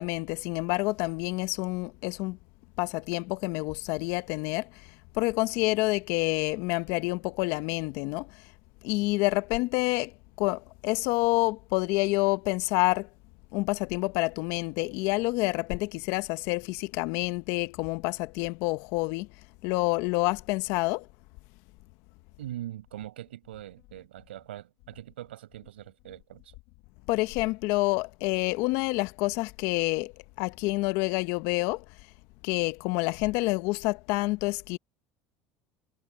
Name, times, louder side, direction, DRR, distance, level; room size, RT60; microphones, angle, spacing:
voice 1, 0.0-2.4 2.8-4.7 5.2-8.3 8.8-10.1 10.4-13.1 13.5-19.3 19.6-21.0 27.1-30.1 30.4-31.8 32.4-34.8, left 23 dB, 70° left, 1.2 m, -28 dB
voice 2, 22.4-26.6, right 13 dB, 90° right, 7.8 m, -42 dB
hypercardioid pair, 85°, 6 cm